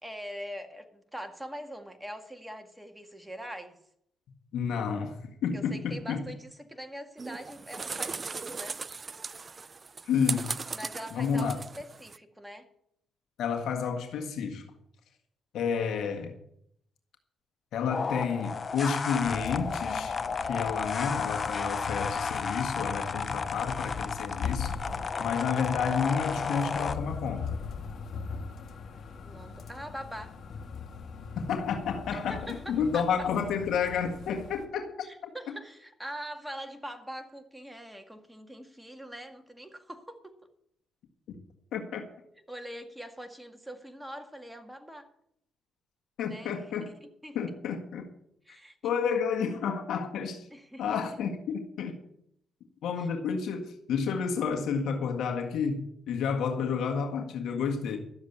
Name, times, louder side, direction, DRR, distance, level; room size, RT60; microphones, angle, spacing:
voice 1, 0.0-3.8 5.5-8.8 10.7-12.7 29.1-30.4 32.1-33.3 35.0-40.4 42.5-45.1 46.3-47.4 48.5-49.0 50.5-51.0 53.0-53.1, equal, 5° right, 1.9 m, -43 dB
voice 2, 4.5-6.2 10.0-10.5 11.1-11.6 13.4-14.6 15.5-16.3 17.7-20.2 20.5-24.7 25.2-27.6 31.3-35.1 41.7-42.0 46.2-46.9 47.3-48.1 48.8-50.5 50.8-52.0 52.8-58.0, left 6 dB, 75° left, 1.7 m, -30 dB
sound 1, 7.2-12.2, right 4 dB, 35° right, 0.4 m, -38 dB
sound 2, 17.9-26.9, left 5 dB, 40° left, 0.8 m, -33 dB
sound 3, 19.1-34.7, left 5 dB, 60° left, 1.8 m, -40 dB
12.5 x 7.4 x 8.5 m
cardioid pair, 90°, 0 cm